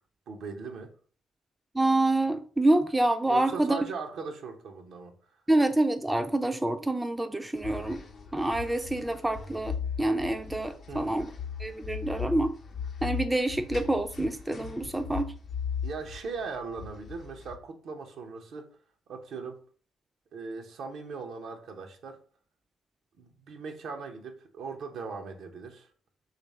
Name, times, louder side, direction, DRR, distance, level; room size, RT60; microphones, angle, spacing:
voice 1, 0.3-0.9 3.3-5.4 10.9-11.2 15.8-18.7 19.1-19.6 20.3-22.2 23.2-25.9, right 4 dB, 65° right, 0.6 m, -39 dB
voice 2, 1.7-3.8 5.5-8.0 8.3-9.7 10.0-11.3 11.6-12.5 13.0-15.3, right 1 dB, 10° right, 0.4 m, -27 dB
sound 1, 7.6-17.6, left 6 dB, 55° left, 0.5 m, -38 dB
3.1 x 2.5 x 4.1 m
hypercardioid pair, 50°, 0 cm